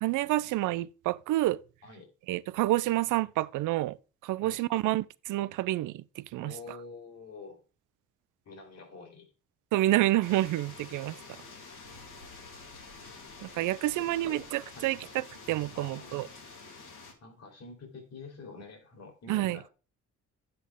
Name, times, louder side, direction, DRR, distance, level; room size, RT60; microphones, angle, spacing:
voice 1, 0.0-1.6 2.3-4.0 4.2-6.5 9.7-11.2 13.4-16.3 19.3-19.6, right 16 dB, 85° right, 0.5 m, -28 dB
voice 2, 6.4-7.6 8.4-9.3 13.8-13.9 14.2-14.4 14.7-14.9 15.7-16.6 17.2-19.7, left 3 dB, 60° left, 3.1 m, -47 dB
sound 1, 10.2-17.1, left 4 dB, 80° left, 3.6 m, -48 dB
10.0 x 7.8 x 3.5 m
cardioid pair, 90°, 30 cm